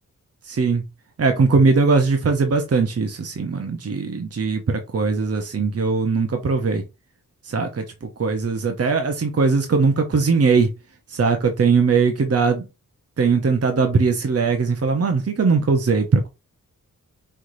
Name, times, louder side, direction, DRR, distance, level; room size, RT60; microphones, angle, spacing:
voice 1, 0.5-0.8 1.2-6.8 7.4-7.8 8.2-10.7 11.1-12.6 13.2-16.3, right 4 dB, 45° right, 0.9 m, -20 dB
5.5 x 3.3 x 2.7 m
cardioid pair, 55°, 33 cm